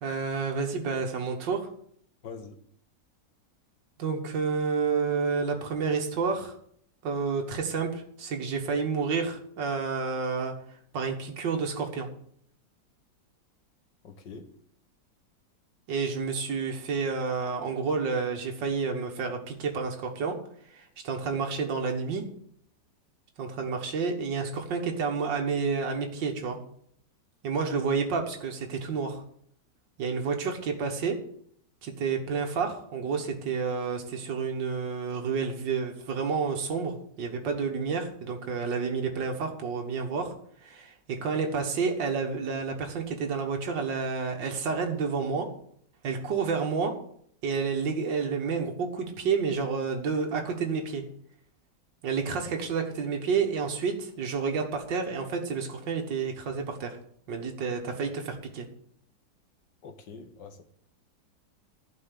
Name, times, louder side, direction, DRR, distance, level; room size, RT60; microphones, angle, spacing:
voice 1, 0.0-1.7 4.0-6.6 7.0-12.1 15.9-20.4 20.6-22.2 23.4-26.6 27.4-29.2 30.0-31.2 31.8-40.3 40.6-45.5 46.0-46.9 47.4-51.0 52.0-57.0 57.3-58.7, right 5 dB, 80° right, 3 dB, 2.1 m, -30 dB
voice 2, 2.2-2.6 14.0-14.5 59.8-60.6, left 5 dB, 75° left, 7 dB, 2.0 m, -44 dB
11.5 x 5.5 x 8.4 m, 0.65 s
omnidirectional pair, 1.9 m